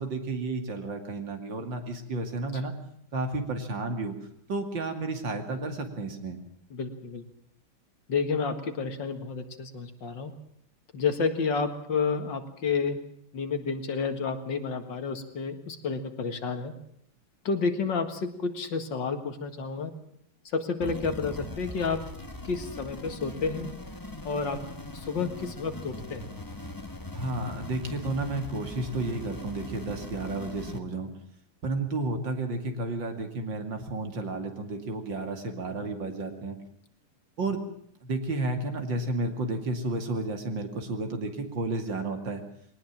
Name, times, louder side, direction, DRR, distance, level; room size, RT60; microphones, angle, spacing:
voice 1, 0.0-2.7 3.1-4.2 4.5-6.4 27.1-31.1 31.6-36.6 37.4-37.6 38.0-42.4, right 2 dB, 60° right, 6 dB, 3.1 m, -32 dB
voice 2, 6.7-7.2 8.1-10.3 10.9-13.0 13.3-16.7 17.4-19.9 20.5-22.0 22.4-23.7 24.2-24.6 24.9-26.3 35.8-35.9, left 5 dB, 60° left, 8 dB, 2.4 m, -30 dB
sound 1, 20.8-30.8, left 2 dB, 15° left, 1.0 m, -40 dB
21.5 x 19.0 x 7.4 m, 0.67 s
omnidirectional pair, 2.3 m